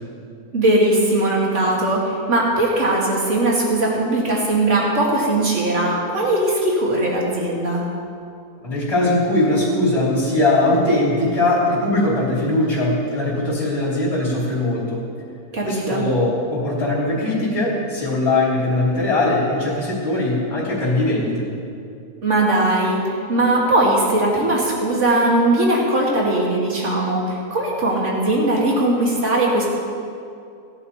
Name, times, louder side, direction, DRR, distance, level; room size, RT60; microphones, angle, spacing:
voice 1, 0.5-7.8 15.5-16.0 22.2-29.7, right 1 dB, 50° right, -3 dB, 2.7 m, -19 dB
voice 2, 8.6-15.0 15.6-21.5, left 2 dB, 40° left, -7 dB, 3.5 m, -20 dB
17.0 x 11.0 x 4.4 m, 2.5 s
omnidirectional pair, 1.7 m